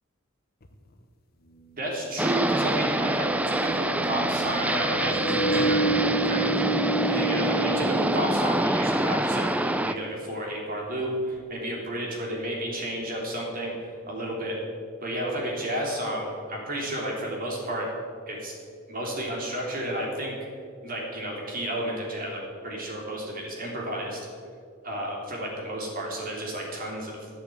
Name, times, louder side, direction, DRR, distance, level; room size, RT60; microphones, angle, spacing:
sound 1, 0.7-0.8 2.2-9.1, right 2 dB, 45° left, 0.9 m, -30 dB
voice 1, 1.8-5.8 6.1-6.5 7.1-14.6 15.0-17.9 18.3-18.5 18.9-20.3 20.8-24.2 24.8-27.3, right 1 dB, 40° right, -2 dB, 3.0 m, -32 dB
sound 2, 2.2-9.9, right 1 dB, 5° right, 0.4 m, -26 dB
11.0 x 8.3 x 7.8 m, 2.2 s
head